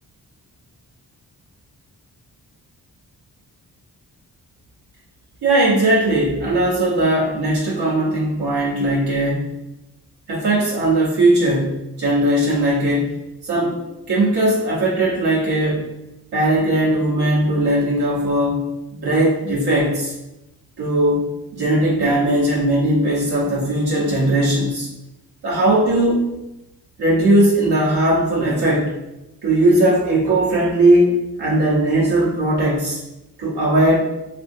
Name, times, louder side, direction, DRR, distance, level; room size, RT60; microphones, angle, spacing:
voice 1, 5.4-9.5 10.3-13.1 13.4-13.7 14.1-15.9 16.3-18.6 18.9-20.1 20.8-24.9 25.4-26.3 27.0-28.9 29.4-33.0 33.4-34.0, right 1 dB, 90° right, -7 dB, 1.0 m, -18 dB
2.8 x 2.6 x 2.6 m, 0.94 s
cardioid pair, 55°, 38 cm